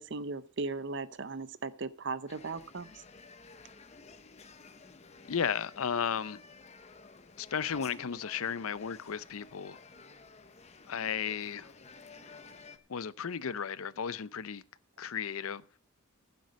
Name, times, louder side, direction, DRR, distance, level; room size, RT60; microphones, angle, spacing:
voice 1, 0.0-2.9, right 3 dB, 55° right, 0.7 m, -37 dB
sound 1, 2.3-12.8, left 4 dB, 30° left, 0.8 m, -53 dB
voice 2, 5.3-6.4 7.4-9.8 10.9-11.7 12.9-14.6 15.0-15.6, left 7 dB, 85° left, 0.6 m, -34 dB
14.5 x 7.7 x 5.3 m
head